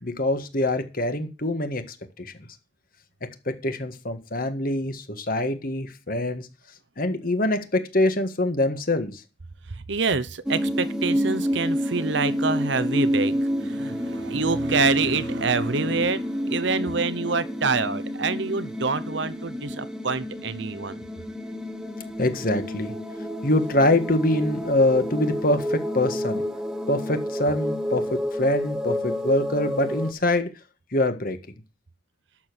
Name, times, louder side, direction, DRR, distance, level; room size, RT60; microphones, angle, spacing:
voice 1, 0.0-2.3 3.4-6.5 7.0-9.2 22.2-22.9 23.4-26.4 26.9-30.5 30.9-31.4, left 1 dB, 45° left, 1.7 m, -24 dB
voice 2, 9.7-21.0, right 4 dB, 60° right, 0.9 m, -27 dB
sound 1, 10.5-30.1, equal, 5° right, 1.0 m, -29 dB
11.5 x 7.2 x 6.3 m
head